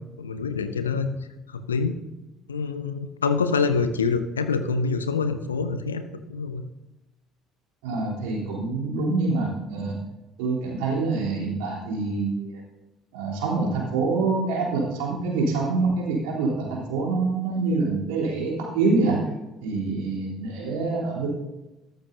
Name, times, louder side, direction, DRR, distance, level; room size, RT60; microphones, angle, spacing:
voice 1, 0.2-1.1 1.5-1.9 2.5-6.0 6.3-6.6, left 5 dB, 80° left, 10 dB, 0.6 m, -25 dB
voice 2, 7.8-9.9 10.4-12.6 13.1-19.2 19.6-21.3, right 3 dB, 65° right, -3 dB, 3.3 m, -26 dB
13.5 x 12.5 x 2.7 m, 0.98 s
figure-of-eight pair, 55°, 0 cm